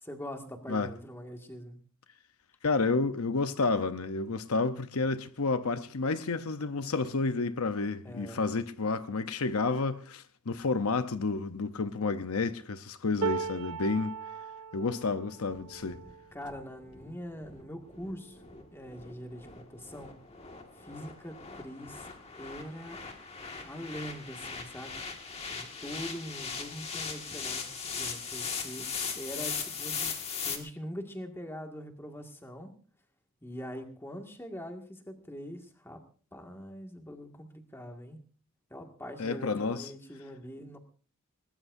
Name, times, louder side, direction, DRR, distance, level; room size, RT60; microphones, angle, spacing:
voice 1, 0.0-1.8 8.0-8.4 16.3-18.4 18.7-20.1 20.8-22.1 22.3-23.0 23.6-25.0 25.5-32.7 33.4-36.0 36.3-38.2 38.7-40.8, equal, 10° left, 2.0 m, -43 dB
voice 2, 2.6-14.2 14.7-16.0 39.2-39.9, left 3 dB, 75° left, 0.8 m, -30 dB
sound 1, 13.2-19.4 19.9-20.1 20.4-21.2 22.2-22.3, right 6 dB, 70° right, 0.8 m, -40 dB
sound 2, 15.5-30.6, left 6 dB, 30° left, 1.9 m, -39 dB
21.0 x 20.0 x 2.7 m
head